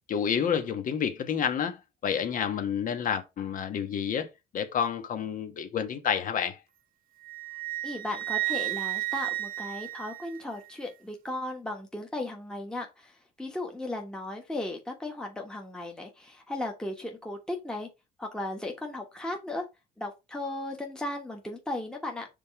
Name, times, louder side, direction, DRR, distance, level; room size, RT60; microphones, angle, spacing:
voice 1, 0.1-4.3 4.5-6.6, left 8 dB, 50° left, 1.3 m, -29 dB
Wind instrument woodwind instrument, 7.2-10.7, right 18 dB, 60° right, 0.8 m, -33 dB
voice 2, 7.8-17.9 18.2-19.7 20.0-22.3, left 2 dB, 5° left, 1.3 m, -36 dB
5.2 x 3.7 x 4.8 m
cardioid pair, 110°, 17 cm